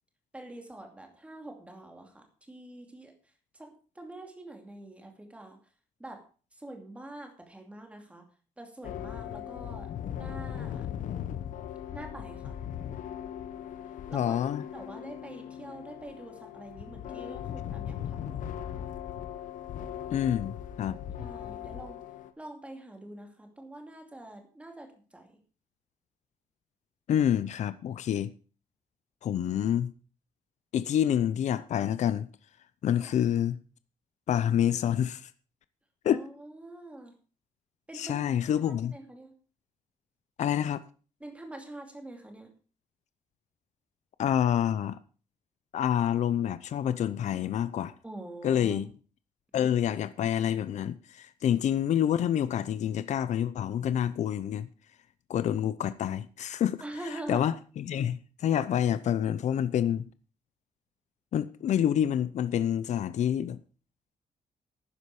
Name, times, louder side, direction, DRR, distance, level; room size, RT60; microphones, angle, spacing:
voice 1, 0.3-3.1 3.5-5.6 6.0-6.2 6.5-8.3 8.6-10.9 11.9-12.6 14.1-14.4 14.7-18.5 21.2-22.0 22.4-25.4 33.0-33.2 36.0-37.1 37.9-38.3 38.6-39.3 41.2-42.5 48.0-48.9 56.8-57.4, right 1 dB, 10° right, 2.5 m, -45 dB
sound 1, 8.8-22.3, left 10 dB, 80° left, 1.1 m, -39 dB
voice 2, 14.1-14.6 20.1-21.0 27.1-28.3 29.2-29.9 30.7-32.3 32.8-33.6 34.3-35.3 36.0-36.2 37.9-38.9 40.4-40.8 44.2-45.0 45.7-47.9 48.4-48.9 49.5-54.7 55.3-56.8 57.3-60.1 61.3-63.6, left 10 dB, 60° left, 0.7 m, -27 dB
12.5 x 9.9 x 4.8 m
wide cardioid pair, 170°, 13 cm